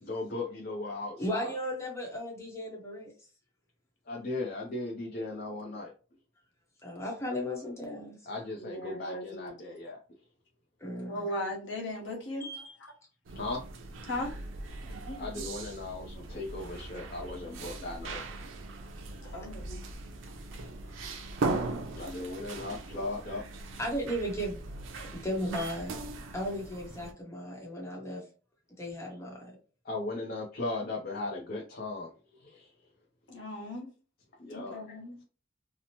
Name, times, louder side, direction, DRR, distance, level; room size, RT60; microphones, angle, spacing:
voice 1, 0.0-1.5 4.1-5.9 8.3-10.0 13.3-13.6 15.2-18.2 22.0-23.4 29.8-32.1 32.4-32.7 34.4-35.0, left 2 dB, 50° left, -1 dB, 0.5 m, -37 dB
voice 2, 1.2-3.1 6.8-8.2 10.8-11.3 12.4-12.7 19.2-19.5 23.8-24.6 25.0-25.9 26.3-28.2 28.8-29.5, equal, 15° left, -2 dB, 0.8 m, -35 dB
voice 3, 8.6-9.5 11.0-12.7 14.1-14.3 14.8-15.4 19.3-19.8 33.3-33.9 34.5-35.2, left 1 dB, 75° left, -1 dB, 1.0 m, -38 dB
sound 1, 13.3-27.1, right 3 dB, 90° right, 0.4 m, -39 dB
2.8 x 2.0 x 2.8 m, 0.37 s
head